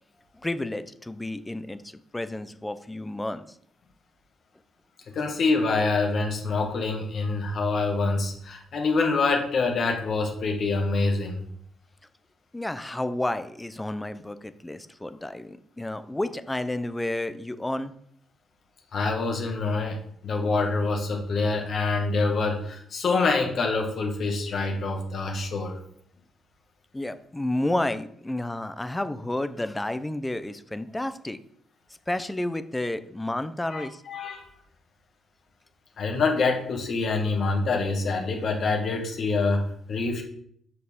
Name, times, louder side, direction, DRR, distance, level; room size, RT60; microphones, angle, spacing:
voice 1, 0.4-3.6 12.5-17.9 26.9-31.4 32.1-34.0, left 1 dB, 10° left, 12 dB, 0.5 m, -31 dB
voice 2, 5.1-11.4 18.9-25.8 33.7-34.5 36.0-40.2, left 3 dB, 55° left, 2 dB, 1.7 m, -26 dB
6.7 x 6.5 x 3.6 m, 0.67 s
cardioid pair, 90°, 0 cm